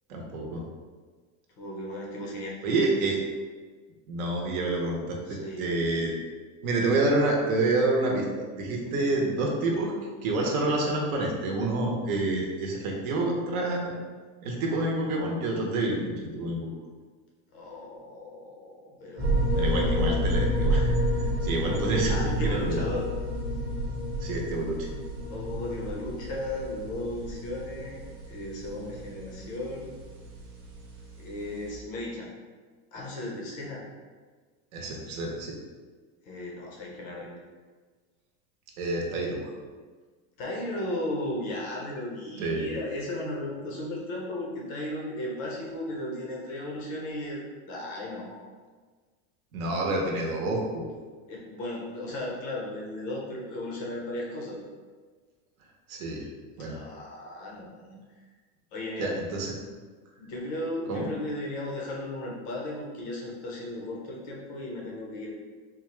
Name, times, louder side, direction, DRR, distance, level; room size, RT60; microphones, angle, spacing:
voice 1, 0.1-0.6 2.6-3.2 4.1-6.1 6.6-9.9 10.2-14.0 14.4-16.7 19.6-20.9 21.4-22.9 24.2-24.9 34.7-35.6 38.8-39.5 42.4-42.7 49.5-50.9 55.9-56.3 56.6-56.8 59.0-59.5 60.9-61.0, right 2 dB, 90° right, 0 dB, 1.0 m, -28 dB
voice 2, 1.6-2.7 5.3-6.1 8.8-9.1 17.5-20.2 22.1-23.1 25.3-28.0 28.3-29.9 31.2-32.3 32.9-33.8 36.2-37.4 40.4-47.4 47.7-48.5 50.1-50.2 51.3-54.6 56.6-58.0 58.7-59.2 60.2-65.3, left 1 dB, 20° left, -3 dB, 0.3 m, -36 dB
sound 1, 19.2-31.8, equal, 25° right, 0.6 m, -30 dB
4.1 x 2.3 x 3.2 m, 1.5 s
supercardioid pair, 170°, 41 cm